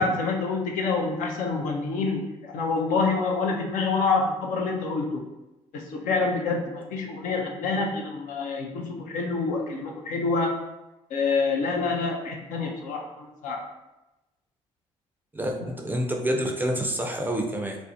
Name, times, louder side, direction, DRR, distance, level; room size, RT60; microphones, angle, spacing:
voice 1, 0.0-5.2 5.7-10.6 11.1-13.6 15.6-15.7, left 4 dB, 60° left, 1 dB, 0.5 m, -27 dB
voice 2, 15.3-17.8, equal, 10° right, 1 dB, 0.4 m, -27 dB
2.4 x 2.0 x 2.5 m, 0.99 s
hypercardioid pair, 50°, 15 cm